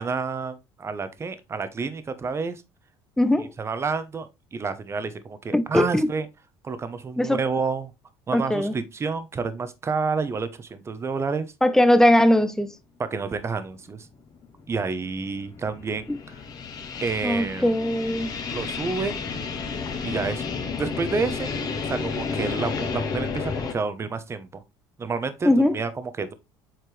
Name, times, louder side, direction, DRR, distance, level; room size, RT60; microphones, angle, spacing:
voice 1, 0.0-2.6 3.6-6.3 6.6-7.9 8.3-11.5 13.1-14.1 14.7-16.4 17.0-17.7 18.5-19.2 20.0-20.4 20.8-21.5 21.9-24.6 25.0-26.3, right 4 dB, 25° right, 1.0 m, -29 dB
voice 2, 3.2-3.5 5.5-6.1 7.2-7.4 8.3-8.8 11.6-12.7 16.1-16.2 17.2-18.3 25.4-25.8, left 1 dB, 5° left, 0.8 m, -20 dB
sound 1, 13.4-13.5 14.1-23.7, left 5 dB, 40° left, 1.7 m, -31 dB
7.7 x 4.4 x 3.3 m
supercardioid pair, 105°, 10 cm